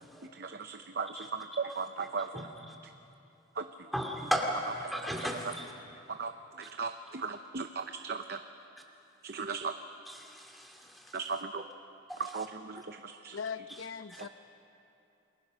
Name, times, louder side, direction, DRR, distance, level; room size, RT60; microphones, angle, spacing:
voice 1, 0.3-2.5 3.6-3.7 5.4-5.5 6.1-8.4 9.2-9.7 11.1-11.6 12.2-13.4, right 5 dB, 50° right, 7 dB, 0.7 m, -37 dB
voice 2, 3.9-5.7 6.6-6.7 10.1-11.2 12.1-12.2 12.8-12.9 13.7-13.8 14.1-14.3, equal, ahead, 0 dB, 2.4 m, -35 dB
voice 3, 13.3-14.3, left 6 dB, 80° left, 12 dB, 0.7 m, -40 dB
29.0 x 21.5 x 6.3 m, 2.8 s
head